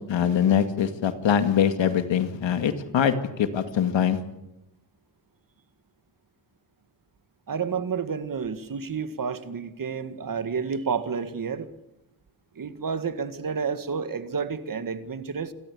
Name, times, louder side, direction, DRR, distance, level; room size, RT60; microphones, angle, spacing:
voice 1, 0.1-4.2, left 8 dB, 80° left, 9 dB, 2.3 m, -23 dB
voice 2, 7.5-11.7 12.6-15.5, right 6 dB, 45° right, 11 dB, 1.9 m, -30 dB
29.0 x 13.5 x 9.8 m, 0.92 s
cardioid pair, 95°, 45 cm